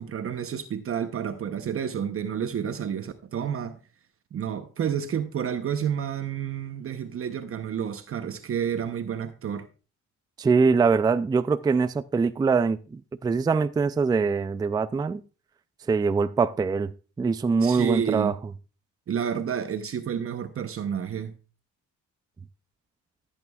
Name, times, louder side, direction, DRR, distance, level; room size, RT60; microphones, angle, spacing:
voice 1, 0.0-3.8 4.3-9.7 17.6-18.3 19.1-21.3, right 8 dB, 50° right, 0.8 m, -30 dB
voice 2, 10.4-15.2 15.9-16.9 17.2-18.3, right 5 dB, 15° right, 0.3 m, -23 dB
14.0 x 8.4 x 2.3 m
cardioid pair, 90°, 30 cm